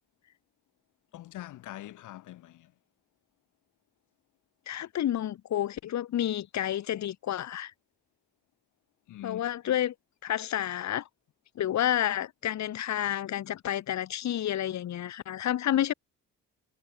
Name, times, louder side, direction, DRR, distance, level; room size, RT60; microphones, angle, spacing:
voice 1, 1.1-2.7 9.1-9.7, left 14 dB, 85° left, 3.5 m, -44 dB
voice 2, 4.7-7.7 9.2-9.9 10.2-11.1 11.6-15.9, left 11 dB, 65° left, 1.7 m, -30 dB
cardioid pair, 90°, 30 cm